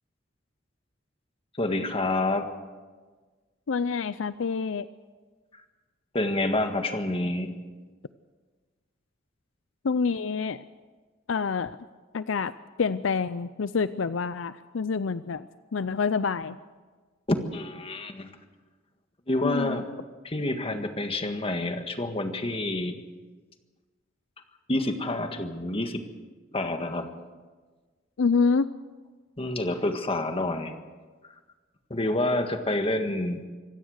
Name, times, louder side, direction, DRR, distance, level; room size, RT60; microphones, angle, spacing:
voice 1, 1.6-2.5 6.1-7.5 17.3-18.3 19.3-19.9 20.2-23.0 24.7-26.0 26.5-27.1 29.4-30.7 31.9-33.4, left 2 dB, 30° left, 6 dB, 1.7 m, -28 dB
voice 2, 3.7-4.9 9.8-10.6 11.3-11.8 12.1-12.5 12.8-16.6 19.4-19.8 28.2-28.7, left 5 dB, 70° left, 15 dB, 0.5 m, -27 dB
25.5 x 16.5 x 6.5 m, 1.4 s
head